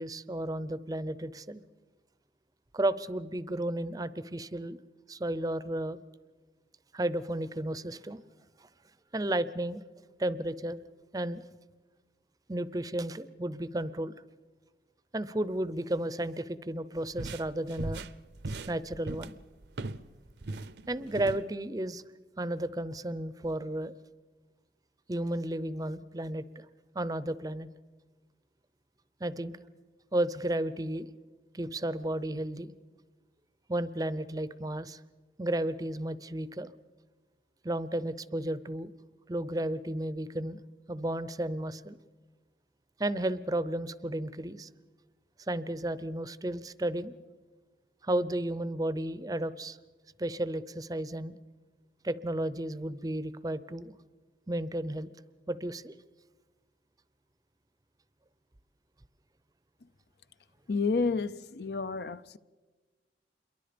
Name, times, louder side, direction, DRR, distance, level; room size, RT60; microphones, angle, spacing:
voice 1, 0.0-1.6 2.7-4.8 5.1-6.0 6.9-8.2 9.1-9.8 10.2-10.8 11.1-11.4 12.5-14.2 15.1-18.0 18.7-19.4 20.9-22.0 22.4-23.9 25.1-26.7 26.9-27.7 29.2-29.5 30.1-31.1 31.5-32.7 33.7-35.0 35.4-36.7 37.6-38.9 39.3-40.6 40.9-42.0 43.0-44.7 45.5-47.1 48.0-49.8 50.2-51.3 52.0-53.9 54.5-55.1 55.5-55.9, right 1 dB, 20° right, 0.6 m, -33 dB
sound 1, 17.0-20.1 20.4-21.4, right 2 dB, 70° right, 0.7 m, -39 dB
voice 2, 60.7-62.4, left 4 dB, 65° left, 0.6 m, -30 dB
27.5 x 22.5 x 5.1 m
head